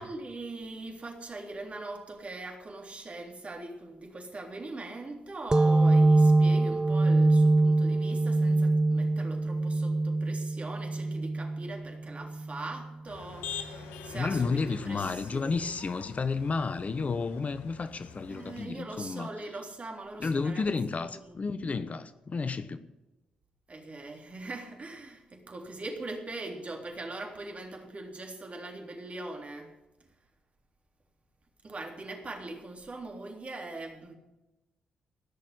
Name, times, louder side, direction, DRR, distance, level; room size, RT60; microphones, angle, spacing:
voice 1, 0.0-15.9 18.3-21.7 23.7-29.7 31.6-34.1, right 2 dB, 40° right, 3.5 m, -41 dB
sound 1, 5.5-12.8, right 2 dB, 20° right, 0.4 m, -24 dB
Motor vehicle (road), 13.1-18.6, left 7 dB, 75° left, 1.2 m, -45 dB
voice 2, 14.1-19.3 20.2-22.9, left 4 dB, 40° left, 1.0 m, -31 dB
17.0 x 6.5 x 9.9 m
hypercardioid pair, 40°, 3 cm